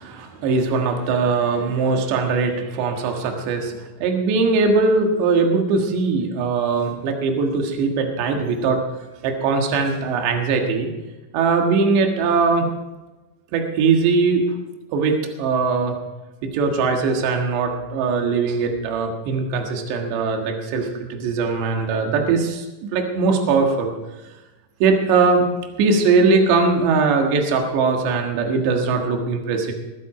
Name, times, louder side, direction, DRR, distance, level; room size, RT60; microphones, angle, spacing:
voice 1, 0.0-8.8 9.2-10.9 11.3-12.7 13.5-14.5 14.9-16.0 16.4-23.9 24.8-25.4 25.8-29.7, right 4 dB, 70° right, 3 dB, 3.6 m, -20 dB
22.5 x 8.2 x 4.9 m, 1.1 s
omnidirectional pair, 5.6 m